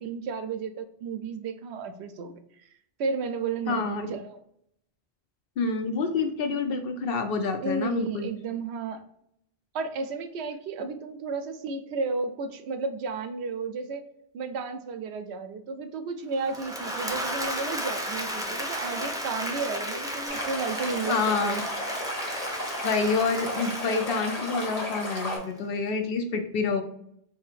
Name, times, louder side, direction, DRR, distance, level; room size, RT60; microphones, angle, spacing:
voice 1, 0.0-2.7 3.0-4.4 7.6-9.0 9.7-14.1 14.3-21.2 21.4-21.6, right 4 dB, 90° right, 10 dB, 0.8 m, -33 dB
voice 2, 3.7-4.1 5.6-8.3 21.1-21.6 22.8-26.8, left 4 dB, 65° left, 6 dB, 0.8 m, -27 dB
Applause / Crowd, 16.4-25.5, equal, 5° right, 0.5 m, -34 dB
Stream, 20.3-25.4, equal, 35° left, 1.4 m, -34 dB
4.8 x 2.8 x 2.4 m, 0.73 s
omnidirectional pair, 1.1 m